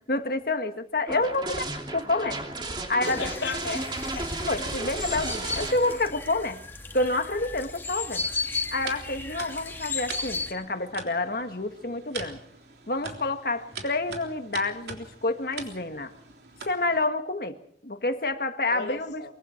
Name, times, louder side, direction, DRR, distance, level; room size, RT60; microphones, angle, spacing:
voice 1, 0.0-1.6 1.9-2.4 2.9-3.2 4.5-6.6 6.9-8.3 8.7-12.4 12.9-16.1 16.7-17.6 17.8-19.3, left 2 dB, 55° left, 1.8 m, -28 dB
sound 1, 1.1-6.1, right 2 dB, 25° right, 3.0 m, -34 dB
voice 2, 2.8-4.5 18.7-19.3, left 3 dB, 80° left, 3.0 m, -35 dB
sound 2, 3.0-10.5, left 4 dB, 15° left, 2.5 m, -35 dB
sound 3, 8.3-17.1, right 4 dB, 70° right, 3.5 m, -43 dB
24.0 x 24.0 x 4.6 m
head